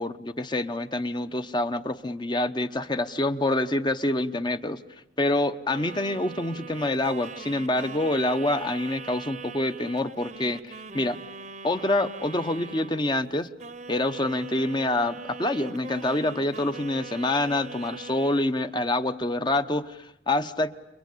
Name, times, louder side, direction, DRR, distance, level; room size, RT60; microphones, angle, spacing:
voice 1, 0.0-4.8 5.2-11.2 11.6-13.5 13.9-20.8, left 1 dB, 25° left, 10 dB, 1.0 m, -26 dB
sound 1, 5.7-13.2 13.6-18.4, right 4 dB, 40° right, 1.0 m, -41 dB
30.0 x 23.0 x 8.5 m, 0.86 s
head